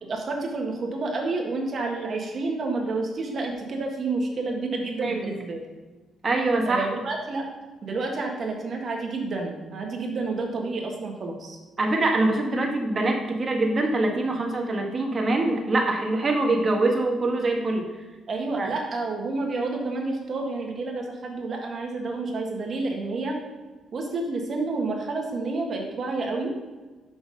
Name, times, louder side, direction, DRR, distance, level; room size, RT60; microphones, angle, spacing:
voice 1, 0.0-5.6 6.6-7.5 7.8-11.6 18.3-23.4 23.9-26.5, right 3 dB, 50° right, 1 dB, 1.7 m, -29 dB
voice 2, 6.2-6.9 11.8-17.9 18.6-18.7, right 2 dB, 35° right, 1 dB, 1.6 m, -24 dB
6.6 x 5.8 x 5.4 m, 1.2 s
cardioid pair, 90°, 0 cm